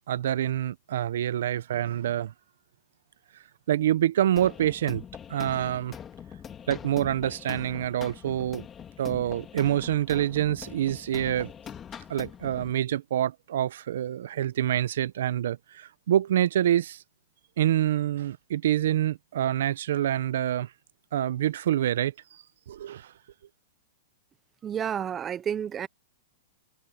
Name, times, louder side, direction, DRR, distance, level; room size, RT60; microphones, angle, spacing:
voice 1, 0.1-2.3 3.7-5.0 5.3-6.0 6.7-8.7 9.0-11.5 12.1-17.0 17.6-20.7 21.1-22.4 22.7-23.1, right 11 dB, 75° right, 0.8 m, -26 dB
sound 1, 4.4-12.7, left 8 dB, 20° left, 2.3 m, -43 dB
voice 2, 24.6-25.9, right 8 dB, 20° right, 0.6 m, -30 dB
hypercardioid pair, 140°, 0 cm